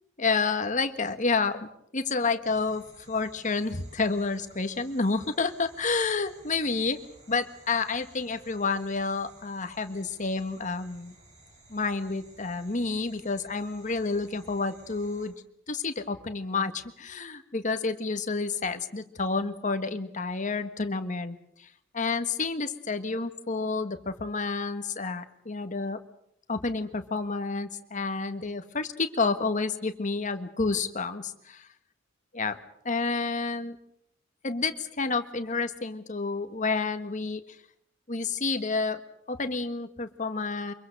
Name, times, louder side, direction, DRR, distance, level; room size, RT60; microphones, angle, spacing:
voice 1, 0.2-7.0 7.3-11.1 11.7-15.3 15.7-21.7 21.9-26.0 26.5-31.3 32.3-32.6 32.8-33.8 34.4-37.4 38.1-39.0 39.3-40.7, left 4 dB, 40° left, 9 dB, 1.5 m, -29 dB
sound 1, 2.4-15.3, right 2 dB, 35° right, 7.6 m, -56 dB
24.5 x 23.0 x 6.7 m, 0.72 s
head